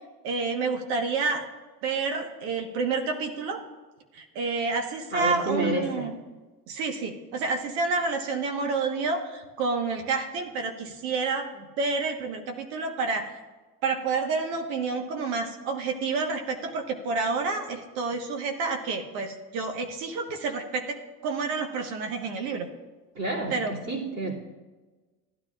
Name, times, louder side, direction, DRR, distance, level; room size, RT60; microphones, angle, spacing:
voice 1, 0.2-1.5 1.8-3.6 4.1-6.1 6.7-13.4 13.8-21.0 21.2-22.7 23.5-23.8, right 4 dB, 65° right, 4 dB, 1.4 m, -29 dB
voice 2, 5.1-6.1 23.1-24.4, right 1 dB, 35° right, -3 dB, 2.7 m, -29 dB
15.5 x 9.8 x 2.5 m, 1.3 s
supercardioid pair, 105°, 47 cm